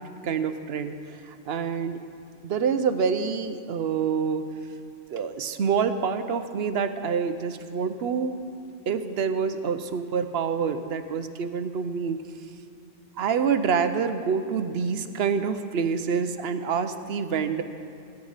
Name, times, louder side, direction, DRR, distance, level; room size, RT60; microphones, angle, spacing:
voice 1, 0.2-0.9 1.2-2.0 2.4-4.4 5.1-8.3 8.9-12.2 13.2-17.6, right 6 dB, 65° right, 9 dB, 0.9 m, -27 dB
15.5 x 12.5 x 4.0 m, 2.5 s
omnidirectional pair, 1.2 m